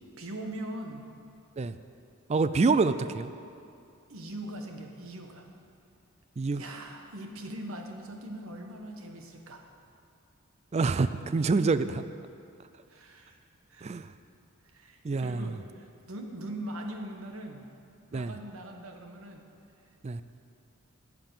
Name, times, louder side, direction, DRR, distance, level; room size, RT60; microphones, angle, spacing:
voice 1, 0.2-1.1 4.1-5.5 6.6-9.7 12.9-13.4 13.7-13.9 14.6-17.7 18.1-19.4, right 1 dB, 75° right, 3 dB, 1.4 m, -41 dB
voice 2, 2.3-3.3 6.4-6.6 10.7-12.0 13.8-14.1 15.0-15.5 18.1-18.3 20.0-20.2, right 4 dB, 30° right, 12 dB, 0.3 m, -26 dB
14.5 x 5.9 x 9.2 m, 2.5 s
head